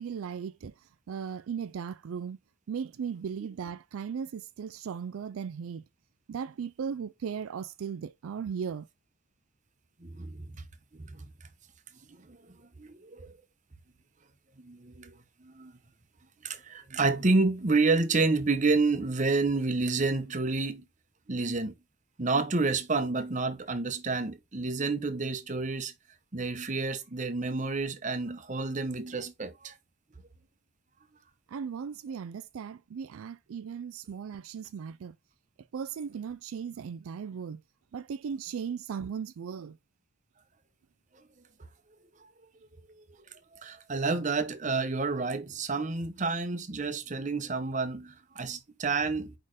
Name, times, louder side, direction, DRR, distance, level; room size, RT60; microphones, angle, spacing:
voice 1, 0.0-2.4 2.7-5.8 6.3-8.9 31.5-35.2 35.6-37.6 37.9-39.8, right 7 dB, 85° right, 0.4 m, -37 dB
voice 2, 10.0-10.6 10.9-11.3 12.1-13.4 14.6-15.1 15.4-15.7 16.4-20.8 21.3-21.7 22.2-25.9 26.3-29.7 41.2-41.3 42.9-43.0 43.5-49.3, right 3 dB, 35° right, 0.8 m, -29 dB
5.0 x 4.3 x 4.7 m
head